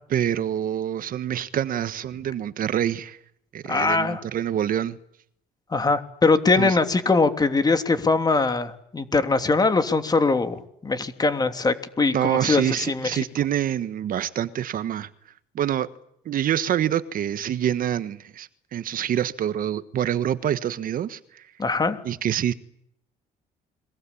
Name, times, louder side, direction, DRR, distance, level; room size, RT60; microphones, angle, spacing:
voice 1, 0.1-3.2 3.5-5.0 6.5-6.8 12.1-15.1 15.5-15.9 16.2-21.4 22.0-22.5, right 10 dB, 55° right, 1.4 m, -26 dB
voice 2, 3.7-4.2 5.7-13.1 21.6-22.0, left 3 dB, 25° left, 3.0 m, -22 dB
30.0 x 23.0 x 8.6 m
cardioid pair, 110°, 17 cm